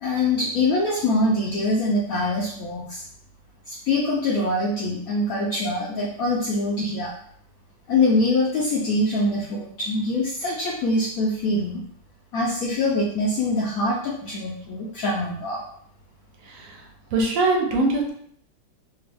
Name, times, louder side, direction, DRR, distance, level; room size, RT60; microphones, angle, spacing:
voice 1, 0.0-3.0 3.7-7.1 7.9-11.8 12.3-15.6, left 2 dB, 75° left, -4 dB, 0.8 m, -24 dB
voice 2, 16.5-16.8 17.1-18.1, right 2 dB, 65° right, 0 dB, 0.8 m, -22 dB
3.4 x 2.3 x 3.4 m, 0.65 s
omnidirectional pair, 2.1 m